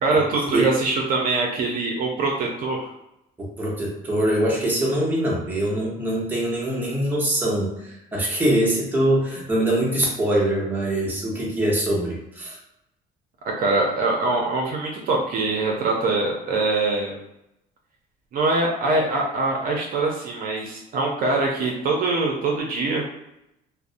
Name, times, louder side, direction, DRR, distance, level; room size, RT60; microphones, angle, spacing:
voice 1, 0.0-2.9 13.6-17.2 18.3-23.0, right 3 dB, 55° right, 0 dB, 0.5 m, -23 dB
voice 2, 3.4-12.6, right 1 dB, 10° right, -4 dB, 0.9 m, -23 dB
2.5 x 2.0 x 2.5 m, 0.87 s
cardioid pair, 110°, 17 cm